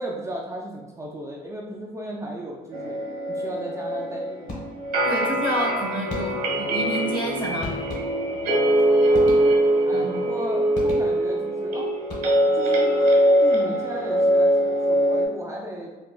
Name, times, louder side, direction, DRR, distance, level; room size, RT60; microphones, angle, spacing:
voice 1, 0.0-3.0 3.3-4.7 9.1-9.6 9.8-11.9 12.5-13.1 13.4-15.9, right 1 dB, 20° right, -2 dB, 0.4 m, -35 dB
sound 1, 2.7-15.2, right 1 dB, 65° right, 1.1 m, -22 dB
sound 2, 4.5-5.0 6.1-6.6 7.6-8.5 9.1-9.9 10.7-11.4 12.0-12.6, left 2 dB, 45° left, 1.2 m, -37 dB
voice 2, 5.0-7.9 9.9-10.3, equal, 30° left, 0 dB, 0.8 m, -29 dB
4.2 x 2.2 x 2.2 m, 1.2 s
cardioid pair, 110°, 17 cm